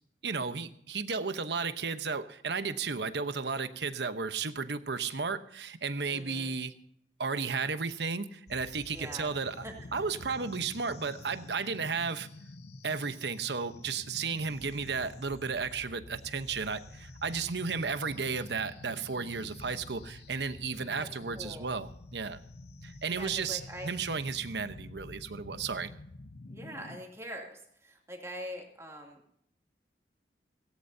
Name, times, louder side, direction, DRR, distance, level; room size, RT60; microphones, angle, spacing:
voice 1, 0.2-6.7 7.2-9.6 9.9-12.3 12.8-22.4 22.8-25.9, right 5 dB, 80° right, 10 dB, 1.0 m, -34 dB
voice 2, 6.1-6.5 8.9-9.3 9.6-9.7 21.0-21.1 21.3-21.7 23.1-23.9 26.5-29.2, equal, 15° right, 0 dB, 2.7 m, -43 dB
sound 1, 8.5-27.0, left 2 dB, 70° left, 0.9 m, -49 dB
17.5 x 17.5 x 2.8 m, 0.68 s
head